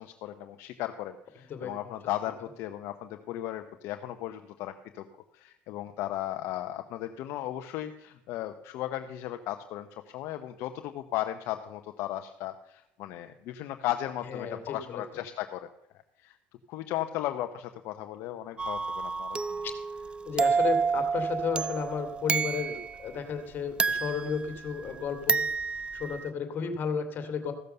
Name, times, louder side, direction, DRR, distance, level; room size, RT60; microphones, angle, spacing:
voice 1, 0.0-5.1 5.3-15.7 16.2-16.4 16.7-19.6, left 13 dB, 70° left, 7 dB, 0.8 m, -36 dB
voice 2, 14.2-15.0 19.6-19.7 20.2-25.5 25.9-27.5, left 6 dB, 45° left, 7 dB, 2.5 m, -33 dB
sound 1, 18.6-23.0 23.8-24.9 25.3-26.3, right 5 dB, 20° right, 0.4 m, -29 dB
15.0 x 6.8 x 6.7 m, 0.84 s
supercardioid pair, 105°, 5 cm